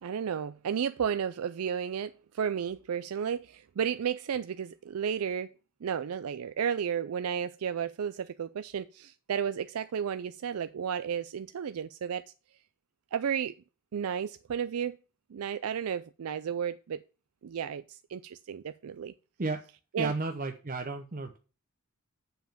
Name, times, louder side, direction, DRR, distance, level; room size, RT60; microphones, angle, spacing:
voice 1, 0.0-5.5 5.8-12.2 13.1-13.5 13.9-15.0 15.3-17.0 17.4-19.1 19.9-20.1, right 8 dB, 90° right, 0.4 m, -33 dB
voice 2, 20.0-21.4, right 3 dB, 40° right, 0.7 m, -33 dB
7.3 x 5.8 x 7.0 m
head